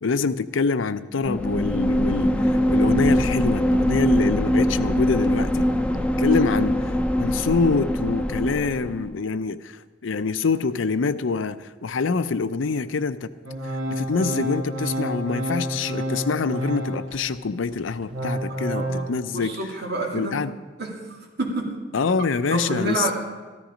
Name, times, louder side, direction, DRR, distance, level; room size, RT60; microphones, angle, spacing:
voice 1, 0.0-5.7 6.2-6.8 7.2-13.3 13.9-19.5 20.1-20.5 21.9-23.1, left 4 dB, 85° left, 14 dB, 0.6 m, -25 dB
sound 1, 1.2-9.1, equal, 5° left, 0.5 m, -22 dB
Organ, 13.4-17.3 17.7-19.0, right 1 dB, 80° right, 2.4 m, -29 dB
voice 2, 18.8-20.4 20.8-21.0 21.4-21.8 22.5-23.1, right 2 dB, 55° right, -1 dB, 2.6 m, -28 dB
14.0 x 13.5 x 5.1 m, 1.3 s
head